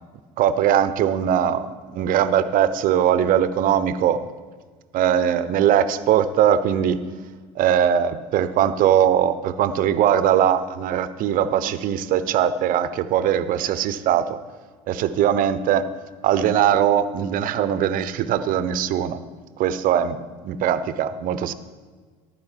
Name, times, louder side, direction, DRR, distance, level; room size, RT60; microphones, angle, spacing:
voice 1, 0.4-4.3 4.9-7.0 7.6-14.4 14.9-15.9 16.2-19.2 19.6-21.5, right 9 dB, 55° right, 14 dB, 0.9 m, -20 dB
14.5 x 11.5 x 4.6 m, 1.5 s
hypercardioid pair, 70°, 17 cm